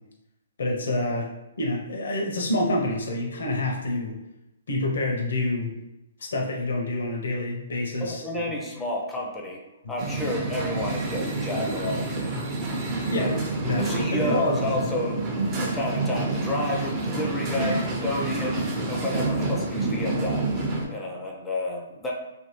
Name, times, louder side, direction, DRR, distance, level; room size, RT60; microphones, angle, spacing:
voice 1, 0.6-1.3 1.6-4.1 4.7-5.7 6.2-8.2 13.1-13.3 13.6-14.9, left 2 dB, 70° left, 0 dB, 0.6 m, -27 dB
voice 2, 8.0-12.4 13.1-13.4 13.8-15.2 15.6-18.6 18.9-20.5 20.9-22.1, left 1 dB, 10° left, -1 dB, 0.5 m, -31 dB
sound 1, 10.0-20.8, right 2 dB, 30° right, 0.7 m, -28 dB
2.8 x 2.7 x 2.9 m, 0.94 s
hypercardioid pair, 135°, 0 cm